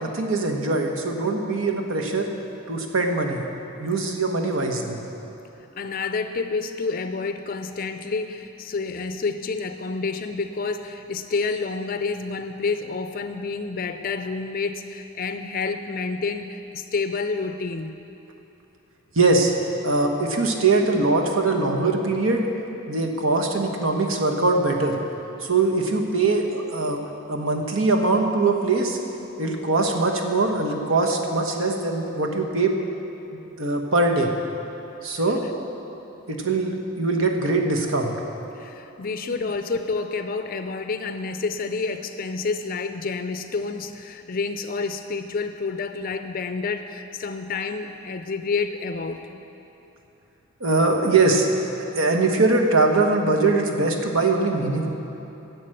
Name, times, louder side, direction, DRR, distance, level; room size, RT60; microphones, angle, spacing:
voice 1, 0.0-2.3 2.7-3.4 3.8-5.0 19.1-19.5 19.8-22.5 22.9-25.0 25.4-27.0 27.3-29.0 29.4-32.7 33.3-34.3 35.0-35.4 36.3-38.1 50.6-51.5 51.8-54.9, right 3 dB, 75° right, 2 dB, 1.2 m, -22 dB
voice 2, 5.8-18.0 38.6-49.2, left 4 dB, 45° left, 8 dB, 0.4 m, -29 dB
11.0 x 8.1 x 7.6 m, 3.0 s
head